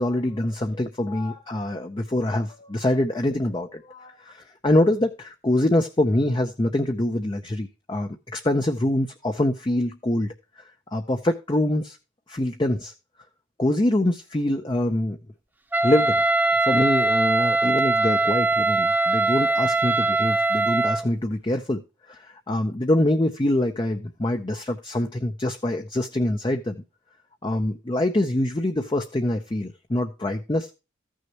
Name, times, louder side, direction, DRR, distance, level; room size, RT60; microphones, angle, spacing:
voice 1, 0.0-10.3 10.9-12.0 12.3-12.9 13.6-15.2 15.8-16.2 16.6-21.8 22.1-26.8 27.4-30.7, left 1 dB, 25° left, 0.7 m, -24 dB
Wind instrument woodwind instrument, 15.7-21.1, right 2 dB, 10° right, 0.7 m, -21 dB
14.5 x 6.4 x 2.9 m
head